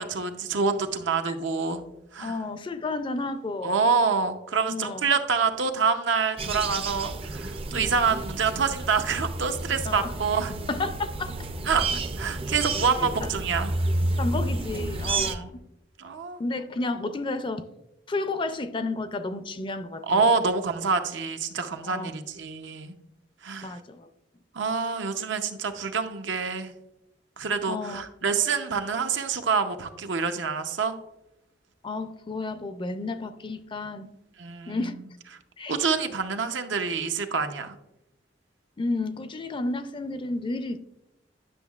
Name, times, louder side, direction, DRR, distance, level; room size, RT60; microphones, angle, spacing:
voice 1, 0.0-1.8 2.1-2.4 3.6-10.5 11.7-11.9 12.2-13.7 15.1-15.5 16.0-16.4 20.1-22.9 23.4-23.8 24.5-26.7 27.4-31.0 34.4-34.8 35.7-37.8, right 5 dB, 80° right, 7 dB, 0.7 m, -26 dB
voice 2, 2.2-3.9 4.7-5.0 9.9-10.1 10.7-11.3 13.0-13.3 14.2-15.6 16.4-17.7 18.1-20.2 21.8-22.1 23.6-24.1 27.7-28.0 31.8-34.1 34.7-34.9 35.6-35.8 38.8-40.8, left 2 dB, 25° left, 10 dB, 0.4 m, -31 dB
sound 1, 6.4-15.4, right 2 dB, 30° right, 0.4 m, -30 dB
10.0 x 6.2 x 2.3 m, 0.89 s
head